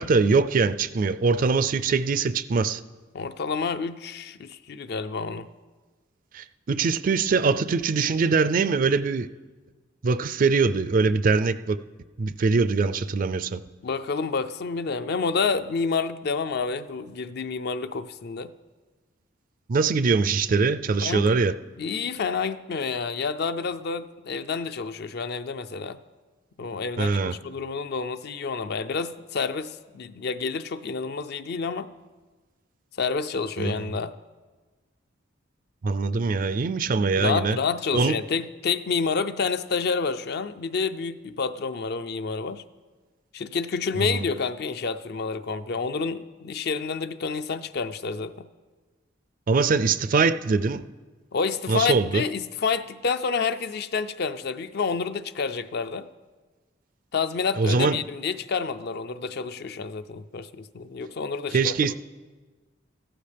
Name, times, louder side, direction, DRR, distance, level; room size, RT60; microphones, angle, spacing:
voice 1, 0.0-2.8 6.3-9.3 10.0-11.8 12.2-13.6 19.7-21.5 27.0-27.3 33.6-33.9 35.8-37.6 37.9-38.2 44.0-44.3 49.5-50.8 51.7-52.2 57.6-58.0 61.5-61.9, right 4 dB, 45° right, 13 dB, 0.4 m, -23 dB
voice 2, 3.1-5.5 13.8-18.5 21.0-21.4 21.8-26.0 26.6-31.9 33.0-34.1 37.2-42.6 43.3-48.5 51.3-56.1 57.1-61.9, left 5 dB, 55° left, 12 dB, 0.5 m, -29 dB
15.0 x 14.0 x 3.4 m, 1.3 s
head